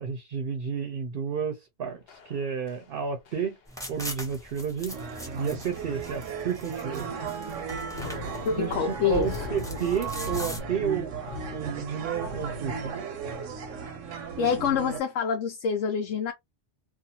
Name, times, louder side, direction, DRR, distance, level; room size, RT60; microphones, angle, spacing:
voice 1, 0.0-3.6 3.9-5.0 5.4-7.2 8.6-11.1 11.5-13.0, right 7 dB, 55° right, 0.7 m, -31 dB
sound 1, 2.1-3.0 3.3-3.6 3.8-4.1 4.4-4.6 5.0-5.1 5.6-5.9 6.2-6.3 6.7-7.6 7.9-12.9, left 3 dB, 60° left, 0.9 m, -41 dB
sound 2, 3.7-10.6, equal, 5° left, 0.6 m, -42 dB
sound 3, 4.9-15.0, right 5 dB, 90° right, 1.1 m, -36 dB
voice 2, 8.5-9.6 14.4-16.3, left 7 dB, 90° left, 1.0 m, -27 dB
2.5 x 2.4 x 2.7 m
omnidirectional pair, 1.2 m